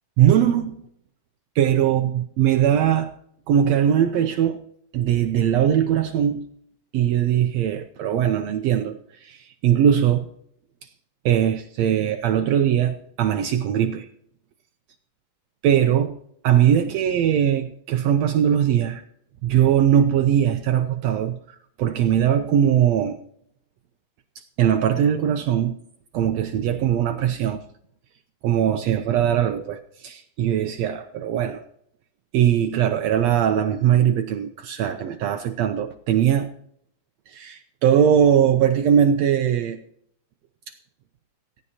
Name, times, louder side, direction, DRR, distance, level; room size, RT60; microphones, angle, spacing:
voice 1, 0.2-0.9 1.5-3.1 3.5-4.6 4.9-6.4 6.9-10.3 10.8-10.9 11.2-14.1 15.6-16.1 16.4-19.0 19.4-23.2 24.4-25.7 26.1-27.6 28.4-31.6 32.3-36.5 37.3-39.8 40.7-40.8, right 9 dB, 85° right, 1.5 m, -20 dB
17.5 x 15.0 x 2.8 m
omnidirectional pair, 3.9 m